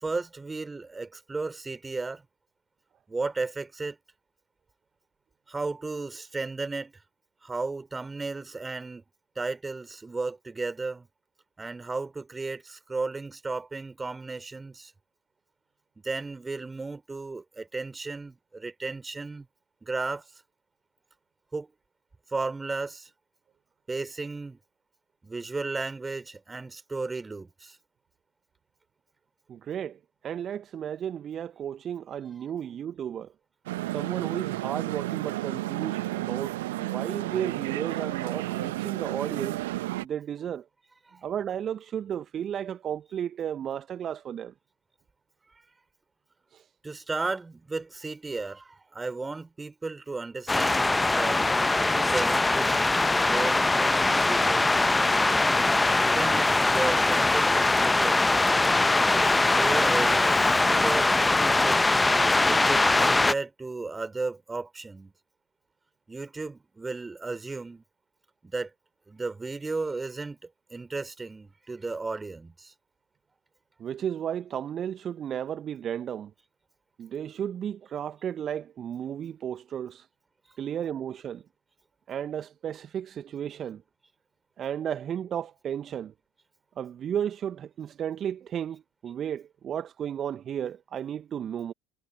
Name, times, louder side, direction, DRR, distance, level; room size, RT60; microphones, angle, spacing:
voice 1, 0.0-2.2 3.1-4.0 5.5-7.0 7.4-9.0 9.4-11.1 11.6-14.9 16.0-19.5 19.8-20.4 21.5-21.7 22.3-23.1 23.9-24.6 25.2-27.8 41.1-41.3 46.8-54.8 56.0-58.3 59.1-61.2 61.4-61.9 62.4-65.1 66.1-67.8 68.4-68.7 69.1-72.7, right 3 dB, 15° right, 3.9 m, -34 dB
voice 2, 29.5-33.3 33.8-39.6 40.0-40.7 41.2-44.5 46.5-46.7 73.8-76.3 77.0-80.1 80.6-81.4 82.1-83.8 84.6-86.1 86.8-91.7, right 9 dB, 40° right, 1.2 m, -34 dB
sound 1, 33.7-40.1, right 17 dB, 70° right, 0.9 m, -32 dB
sound 2, 50.5-63.3, left 2 dB, 10° left, 0.8 m, -22 dB
figure-of-eight pair, 65°, 0 cm